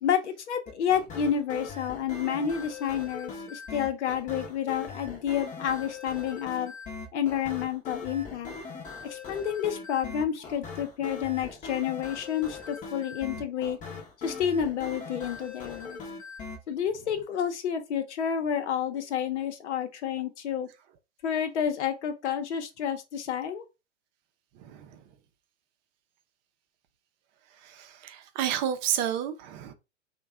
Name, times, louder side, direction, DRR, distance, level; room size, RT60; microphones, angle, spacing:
voice 1, 0.0-6.7 7.1-8.5 9.1-13.8 14.2-16.0 16.7-20.7 21.2-23.6, left 8 dB, 65° left, 0.9 m, -30 dB
sound 1, 0.7-16.6, left 4 dB, 20° left, 0.8 m, -41 dB
voice 2, 24.6-25.0 27.6-29.7, right 10 dB, 40° right, 0.6 m, -31 dB
3.1 x 2.3 x 3.5 m
hypercardioid pair, 110°, 37 cm